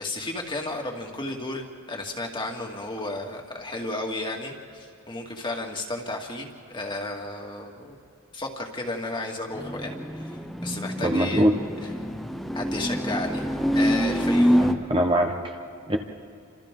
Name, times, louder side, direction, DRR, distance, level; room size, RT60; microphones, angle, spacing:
voice 1, 0.0-8.0 8.3-11.4 11.8-11.9 12.5-13.5 13.7-14.7, left 2 dB, 25° left, 1 dB, 2.3 m, -33 dB
sound 1, 9.5-14.7, equal, ahead, 0.8 m, -25 dB
voice 2, 11.0-11.5 14.6-15.6 15.9-16.0, right 1 dB, 25° right, 3 dB, 1.2 m, -22 dB
29.5 x 26.5 x 3.8 m, 2.5 s
head